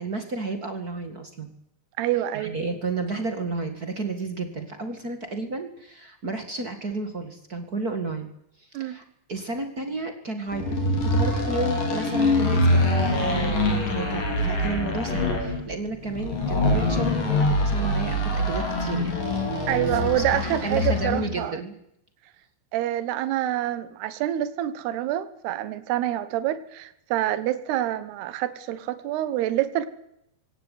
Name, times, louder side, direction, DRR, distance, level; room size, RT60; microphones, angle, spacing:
voice 1, 0.0-1.5 2.3-8.3 8.6-19.1 19.9-21.7, right 3 dB, 40° right, 7 dB, 1.3 m, -32 dB
voice 2, 2.0-2.5 8.7-9.0 19.7-21.6 22.7-29.9, right 13 dB, 70° right, 12 dB, 3.2 m, -27 dB
sound 1, 10.5-21.3, left 2 dB, 50° left, 6.4 m, -24 dB
20.0 x 18.0 x 9.4 m, 0.79 s
omnidirectional pair, 5.0 m